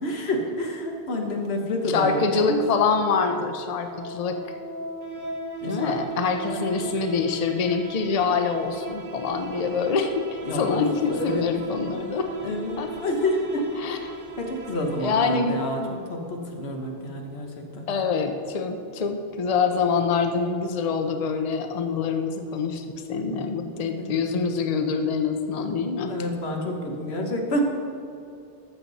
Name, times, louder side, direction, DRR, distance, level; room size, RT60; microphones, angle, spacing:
voice 1, 0.0-2.6 5.6-6.0 6.4-6.9 10.4-11.5 12.4-13.6 14.4-17.9 23.2-23.4 23.8-24.1 26.1-27.6, left 1 dB, 90° left, 2 dB, 1.4 m, -29 dB
voice 2, 1.9-4.4 5.6-10.2 10.5-12.3 12.8-12.9 13.8-14.1 15.0-15.5 17.9-26.1, left 5 dB, 45° left, 6 dB, 0.7 m, -25 dB
sound 1, 3.2-16.0, right 2 dB, 50° right, 1.1 m, -38 dB
12.5 x 7.3 x 4.1 m, 2.6 s
omnidirectional pair, 1.0 m